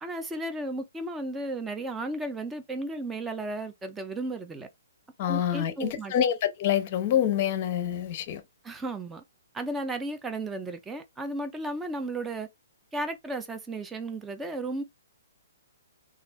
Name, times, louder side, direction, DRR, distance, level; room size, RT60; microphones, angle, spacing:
voice 1, 0.0-4.7 5.2-6.1 8.6-9.2 9.5-12.5 12.9-14.8, right 2 dB, 10° right, 0.5 m, -34 dB
voice 2, 5.2-8.4, left 10 dB, 35° left, 0.7 m, -26 dB
3.2 x 2.3 x 2.3 m
hypercardioid pair, 155°, 0 cm